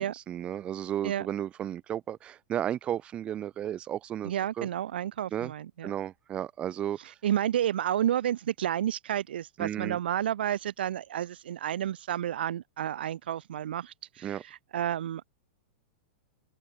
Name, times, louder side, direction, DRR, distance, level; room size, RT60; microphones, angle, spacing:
voice 1, 0.0-4.7 5.3-5.5 5.8-7.1 9.6-10.0 14.2-14.4, right 10 dB, 20° right, 3.7 m, -34 dB
voice 2, 4.2-5.9 7.2-15.3, right 11 dB, 80° right, 4.6 m, -31 dB
open air
supercardioid pair, 165°, 5 cm